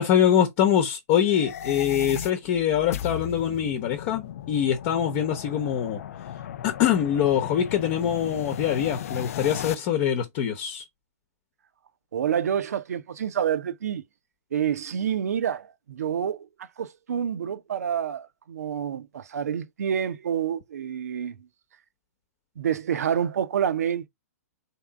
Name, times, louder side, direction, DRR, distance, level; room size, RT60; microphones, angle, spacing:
voice 1, 0.0-6.0 6.6-10.8, left 9 dB, 40° left, 0.9 m, -24 dB
sound 1, 1.2-9.7, left 10 dB, 60° left, 0.4 m, -36 dB
voice 2, 12.1-14.0 14.5-21.4 22.6-24.1, right 8 dB, 70° right, 0.7 m, -28 dB
3.7 x 2.8 x 3.5 m
hypercardioid pair, 120°, 9 cm